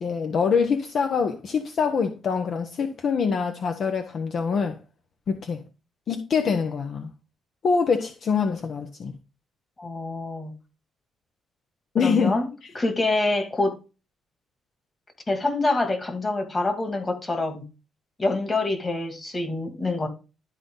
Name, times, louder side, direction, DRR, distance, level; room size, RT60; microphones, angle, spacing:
voice 1, 0.0-4.8 5.3-5.6 6.1-7.1 7.6-9.1 11.9-12.4, left 5 dB, 55° left, 1.0 m, -24 dB
voice 2, 9.8-10.5 12.0-12.5 12.7-13.7 15.3-17.6 18.2-20.1, left 2 dB, 25° left, 2.4 m, -26 dB
12.5 x 4.1 x 3.8 m
cardioid pair, 90°, 0 cm